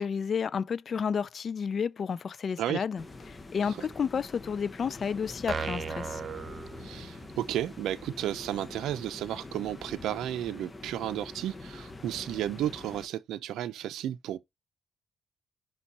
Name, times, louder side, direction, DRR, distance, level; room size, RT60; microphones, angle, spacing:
voice 1, 0.0-6.2, left 6 dB, 45° left, 0.4 m, -31 dB
sound 1, 3.0-13.1, left 2 dB, 20° left, 1.0 m, -45 dB
sound 2, 5.5-7.4, right 5 dB, 35° right, 0.7 m, -36 dB
voice 2, 6.8-14.4, right 12 dB, 80° right, 0.6 m, -33 dB
5.5 x 4.3 x 4.2 m
cardioid pair, 100°, 0 cm